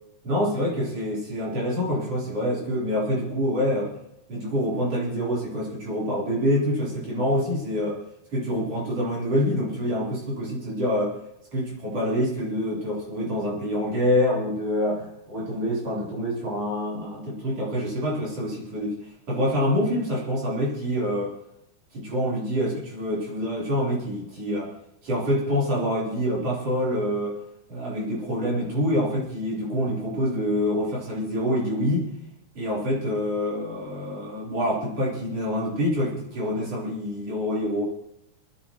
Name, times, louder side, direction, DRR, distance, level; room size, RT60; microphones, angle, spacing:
voice 1, 0.2-3.9 4.3-8.0 8.3-11.1 11.5-19.0 19.3-21.3 21.9-24.7 25.0-27.3 27.7-32.1 32.5-37.9, equal, 50° right, -6 dB, 4.5 m, -26 dB
28.0 x 10.5 x 2.9 m, 0.81 s
omnidirectional pair, 3.6 m